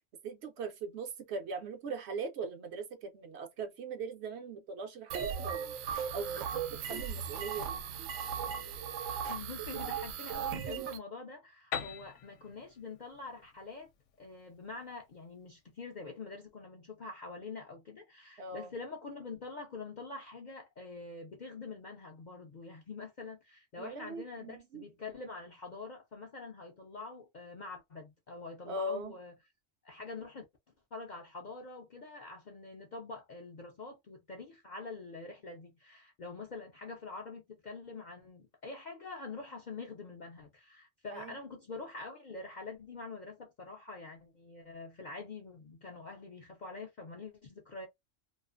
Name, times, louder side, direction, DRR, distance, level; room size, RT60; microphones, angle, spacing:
voice 1, 0.2-5.7 6.1-7.8 18.4-18.7 23.8-24.8 28.7-29.1 41.1-41.4, right 3 dB, 65° right, 0.8 m, -40 dB
sound 1, 5.1-11.0, right 7 dB, 90° right, 1.0 m, -37 dB
voice 2, 9.3-13.9 14.2-29.3 29.8-30.4 30.9-47.9, left 3 dB, 55° left, 0.5 m, -45 dB
Piano, 11.7-15.4, left 8 dB, 75° left, 0.9 m, -43 dB
2.4 x 2.4 x 2.4 m
omnidirectional pair, 1.3 m